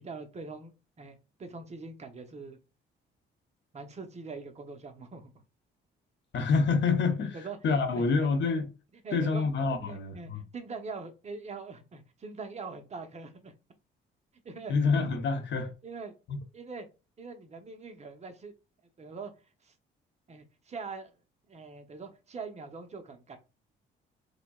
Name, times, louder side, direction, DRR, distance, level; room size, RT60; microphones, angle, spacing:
voice 1, 0.0-2.6 3.7-5.3 7.3-8.0 8.4-8.5 9.0-9.4 9.9-13.5 14.4-14.7 15.8-16.1 16.5-16.9 17.2-18.5 19.0-19.3 19.6-19.7 20.3-21.2 21.5-23.4, right 4 dB, 35° right, 0.8 m, -43 dB
voice 2, 6.3-8.7 9.1-10.4 14.7-15.7 16.3-16.4, left 4 dB, 65° left, 0.9 m, -27 dB
4.9 x 2.3 x 2.3 m
cardioid pair, 90°, 20 cm